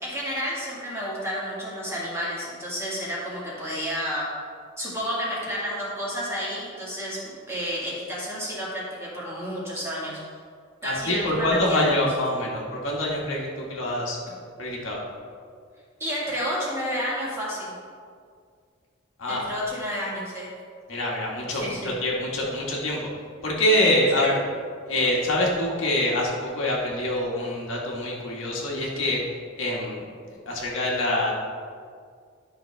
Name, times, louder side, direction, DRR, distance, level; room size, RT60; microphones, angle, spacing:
voice 1, 0.0-4.3 4.8-10.2 10.8-11.9 16.0-17.7 19.3-20.5 21.5-21.9 24.1-24.4, equal, 15° right, -7 dB, 2.1 m, -31 dB
voice 2, 10.8-14.2 14.6-15.0 19.2-19.4 20.9-23.1 23.4-24.3 24.9-29.2 29.6-31.3, left 1 dB, 65° left, -3 dB, 1.6 m, -25 dB
11.5 x 5.8 x 3.4 m, 2.1 s
head